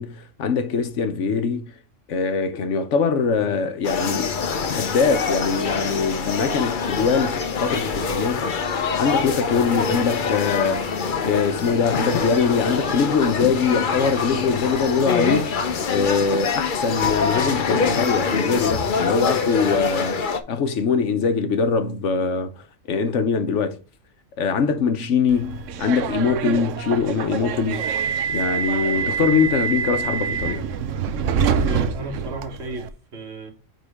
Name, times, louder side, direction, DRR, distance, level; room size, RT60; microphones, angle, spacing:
voice 1, 0.0-1.8 2.1-4.4 4.7-8.5 8.9-10.9 11.2-15.6 15.9-20.2 20.5-23.8 24.4-27.9 28.3-30.7, left 5 dB, 75° left, 1.2 m, -22 dB
sound 1, 3.8-20.4, left 5 dB, 45° left, 0.8 m, -25 dB
Subway metro underground, 25.3-32.9, right 7 dB, 85° right, 1.0 m, -26 dB
voice 2, 31.6-33.5, right 2 dB, 60° right, 1.7 m, -34 dB
9.2 x 3.8 x 3.5 m
omnidirectional pair, 1.3 m